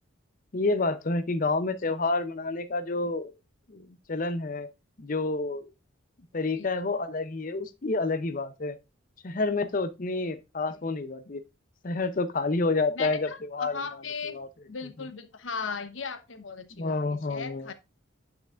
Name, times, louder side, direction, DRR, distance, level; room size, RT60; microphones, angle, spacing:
voice 1, 0.5-3.3 3.7-4.7 5.0-5.7 6.3-8.8 9.2-11.4 11.8-13.8 14.2-14.5 16.8-17.7, left 3 dB, 40° left, 0.6 m, -29 dB
voice 2, 12.9-14.4 14.7-17.7, left 5 dB, 75° left, 1.0 m, -37 dB
8.9 x 5.6 x 2.5 m
head